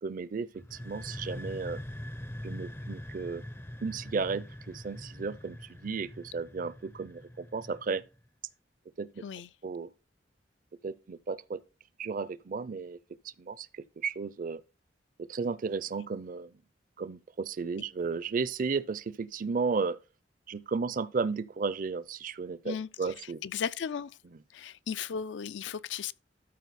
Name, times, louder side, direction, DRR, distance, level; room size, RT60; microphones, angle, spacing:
voice 1, 0.0-1.8 2.4-3.4 3.8-8.0 9.0-9.2 9.6-9.9 10.8-11.6 12.0-13.0 13.2-14.6 15.3-16.5 17.0-20.0 20.5-23.4, right 4 dB, 45° right, 0.4 m, -34 dB
sound 1, 0.5-8.2, left 1 dB, 15° left, 0.4 m, -43 dB
voice 2, 23.4-24.1 24.5-26.1, left 7 dB, 80° left, 0.4 m, -35 dB
12.5 x 4.5 x 4.1 m
head